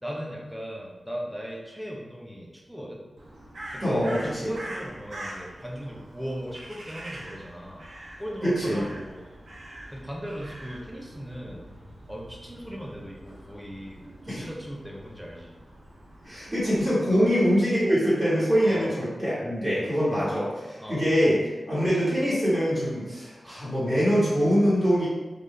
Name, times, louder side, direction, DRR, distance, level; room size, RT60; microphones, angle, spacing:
voice 1, 0.0-3.0 3.7-7.9 8.2-9.3 9.9-11.7 12.1-15.6 17.1-17.3 18.6-18.9 20.8-21.0, equal, ahead, -2 dB, 0.6 m, -38 dB
Crow, 3.2-16.9, right 1 dB, 60° right, 0.7 m, -44 dB
voice 2, 3.8-4.5 8.4-8.8 14.3-14.4 16.2-21.4 21.7-25.1, equal, 25° right, -10 dB, 1.5 m, -24 dB
3.8 x 2.6 x 3.2 m, 1.2 s
wide cardioid pair, 135°, 0 cm